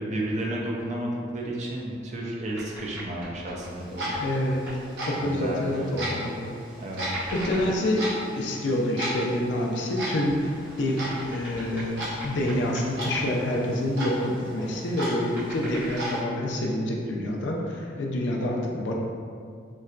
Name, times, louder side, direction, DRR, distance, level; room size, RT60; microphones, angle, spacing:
voice 1, 0.0-4.1 5.2-5.9 6.8-7.2, right 1 dB, 35° right, -3 dB, 0.4 m, -32 dB
sound 1, 2.6-4.3 4.7-4.9 7.1-8.0 10.3-12.9 13.1-13.3 15.3-16.2, right 1 dB, 10° right, 0.9 m, -40 dB
Clock, 3.6-16.2, equal, 60° right, 0.8 m, -36 dB
voice 2, 4.2-4.7 5.0-6.5 7.3-8.0 8.4-10.5 10.8-18.9, left 1 dB, 70° left, -1 dB, 0.4 m, -27 dB
4.1 x 2.1 x 2.4 m, 2.2 s
head